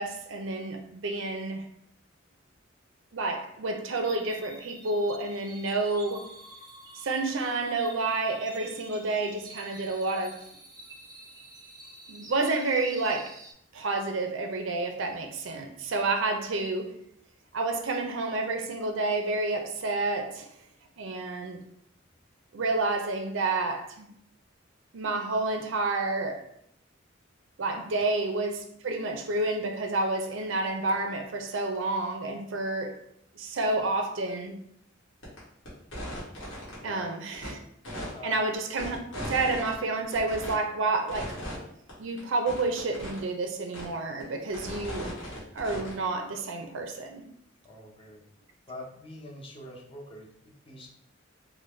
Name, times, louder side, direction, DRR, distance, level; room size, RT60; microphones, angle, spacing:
voice 1, 0.0-1.6 3.1-6.3 6.9-10.4 12.1-13.3 13.7-16.9 17.5-20.5 21.0-21.6 22.5-24.1 24.9-26.4 27.6-33.0 33.3-34.6 36.8-37.6 38.2-39.0 39.3-41.3 42.0-45.1 45.5-47.2, right 3 dB, 75° right, 5 dB, 0.5 m, -29 dB
sound 1, 4.0-13.5, right 2 dB, 20° right, 0.4 m, -49 dB
sound 2, 35.2-35.4 35.6-36.7 37.3-37.5 37.8-39.7 40.1-40.5 41.1-41.6 41.9-42.0 42.2-42.3 42.5-43.2 43.7-43.8 44.2-46.0, equal, 70° left, 1.5 m, -37 dB
voice 2, 36.8-37.1 38.1-38.4 47.6-48.2 48.7-50.9, left 1 dB, 30° left, -1 dB, 0.6 m, -44 dB
3.8 x 2.2 x 3.2 m, 0.71 s
head